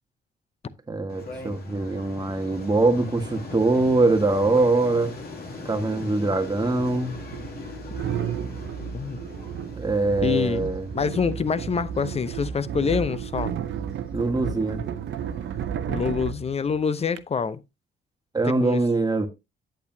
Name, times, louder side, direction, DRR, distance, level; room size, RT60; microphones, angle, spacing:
voice 1, 0.9-5.1 5.6-7.2 9.7-10.9 14.1-14.8 18.3-19.3, right 3 dB, 20° right, 1.5 m, -23 dB
sound 1, 1.1-15.7, left 3 dB, 50° left, 2.6 m, -41 dB
sound 2, 5.5-5.6 6.6-17.2, right 8 dB, 70° right, 0.8 m, -33 dB
voice 2, 10.2-10.7 10.9-13.5 15.9-17.6 18.4-18.8, left 6 dB, 30° left, 0.7 m, -26 dB
9.0 x 8.2 x 2.8 m
cardioid pair, 90°, 20 cm